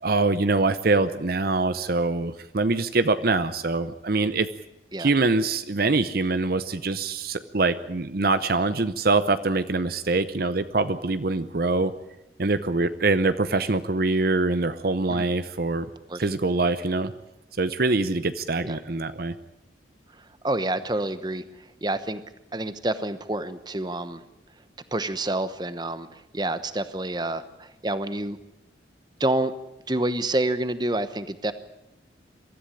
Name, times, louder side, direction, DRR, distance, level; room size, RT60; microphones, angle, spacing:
voice 1, 0.0-4.5 5.0-11.9 12.4-15.9 16.1-17.1 17.6-19.3, right 3 dB, 50° right, 12 dB, 0.7 m, -24 dB
voice 2, 20.4-21.4 21.8-22.2 22.5-24.2 24.9-28.4 29.2-29.5 29.9-31.5, right 1 dB, 20° right, 12 dB, 1.0 m, -28 dB
23.0 x 13.5 x 9.9 m, 0.93 s
head